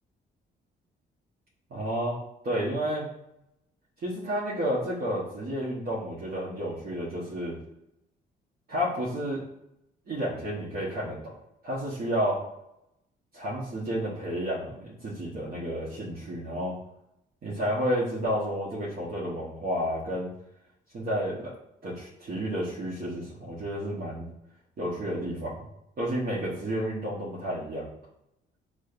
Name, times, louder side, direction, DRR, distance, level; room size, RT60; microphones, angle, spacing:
voice 1, 1.7-2.2 2.4-3.1 4.0-7.6 8.7-9.4 10.1-11.3 11.6-12.4 13.3-16.7 17.4-20.3 20.9-21.5 21.8-24.3 24.8-25.6 26.0-27.9, equal, 50° right, -8 dB, 1.1 m, -31 dB
6.1 x 2.2 x 2.4 m, 0.84 s
cardioid pair, 90°, 20 cm